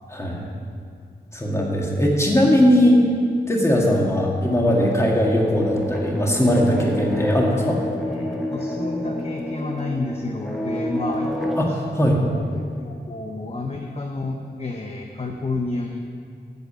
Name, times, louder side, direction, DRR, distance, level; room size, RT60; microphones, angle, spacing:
voice 1, 0.1-0.5 1.3-3.0 3.5-7.8 11.6-12.2, equal, 15° left, -2 dB, 1.7 m, -19 dB
sound 1, 4.6-11.7, left 1 dB, ahead, 1.0 m, -29 dB
voice 2, 8.0-11.3 11.7-16.1, left 2 dB, 35° left, 2 dB, 0.7 m, -30 dB
8.2 x 6.8 x 8.0 m, 2.3 s
wide cardioid pair, 120°, 18 cm